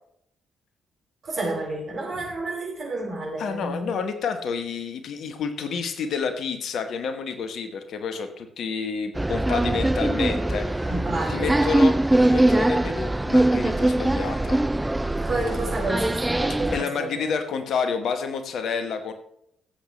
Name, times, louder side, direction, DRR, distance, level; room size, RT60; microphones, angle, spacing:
voice 1, 1.2-4.0 10.9-11.7 15.2-17.3, right 2 dB, 50° right, -2 dB, 4.5 m, -30 dB
voice 2, 3.4-10.9 11.3-11.9 12.2-14.6 16.7-19.1, left 6 dB, 55° left, 8 dB, 1.1 m, -29 dB
sound 1, 9.2-16.8, right 1 dB, 10° right, 0.4 m, -22 dB
15.5 x 8.1 x 3.2 m, 0.72 s
figure-of-eight pair, 40°, 0 cm